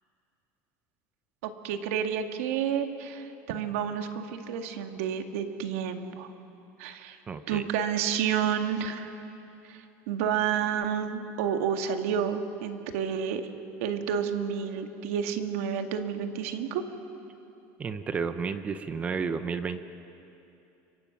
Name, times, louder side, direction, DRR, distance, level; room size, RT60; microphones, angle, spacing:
voice 1, 1.4-6.3 6.8-7.2 7.5-9.2 9.7-13.4 13.8-16.8, right 8 dB, 80° right, 6 dB, 2.0 m, -30 dB
voice 2, 7.3-7.6 17.8-19.8, right 5 dB, 20° right, 10 dB, 0.7 m, -32 dB
29.5 x 24.5 x 6.0 m, 2.8 s
cardioid pair, 170°, 7 cm